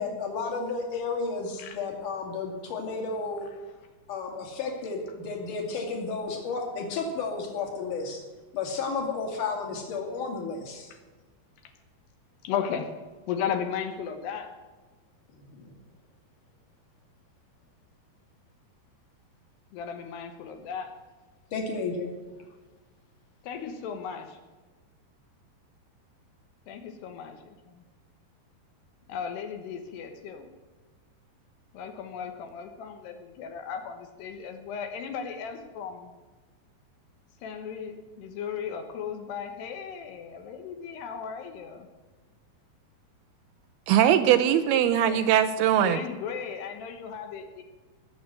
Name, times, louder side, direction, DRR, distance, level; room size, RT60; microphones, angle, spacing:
voice 1, 0.0-3.5 4.1-8.2 8.5-10.9 15.5-15.7 21.5-22.2, left 4 dB, 50° left, 1 dB, 3.7 m, -32 dB
voice 2, 12.4-13.0 13.3-14.5 19.7-20.9 23.4-24.4 26.7-27.8 29.1-30.5 31.7-36.1 37.4-41.9 44.5-45.3 45.8-47.6, left 7 dB, 75° left, 5 dB, 3.2 m, -36 dB
voice 3, 43.9-46.0, right 10 dB, 80° right, 10 dB, 2.4 m, -21 dB
20.0 x 7.3 x 7.7 m, 1.3 s
omnidirectional pair, 4.9 m